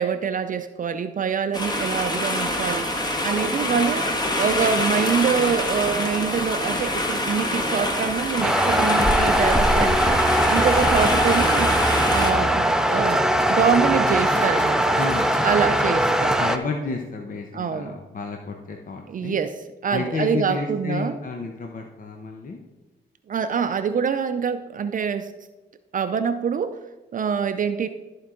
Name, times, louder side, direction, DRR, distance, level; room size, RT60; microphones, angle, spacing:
voice 1, 0.0-2.9 3.2-4.1 4.4-10.2 10.5-11.7 12.1-13.2 13.5-15.0 15.4-16.3 17.5-17.9 19.1-21.2 23.3-25.3 25.9-26.8 27.1-27.9, right 6 dB, 50° right, 9 dB, 0.5 m, -25 dB
sound 1, 1.5-12.3, left 1 dB, 20° left, 1.5 m, -25 dB
sound 2, 8.4-16.6, right 1 dB, 5° right, 0.7 m, -20 dB
sound 3, 9.8-11.9 12.2-15.5 15.8-15.9 16.3-16.4 16.9-17.0, left 1 dB, 85° left, 2.6 m, -44 dB
voice 2, 14.0-14.4 14.9-15.4 15.6-15.8 16.2-19.4 19.9-22.6, left 4 dB, 50° left, 3 dB, 0.9 m, -31 dB
13.5 x 4.7 x 3.8 m, 1.2 s
cardioid pair, 70°, 18 cm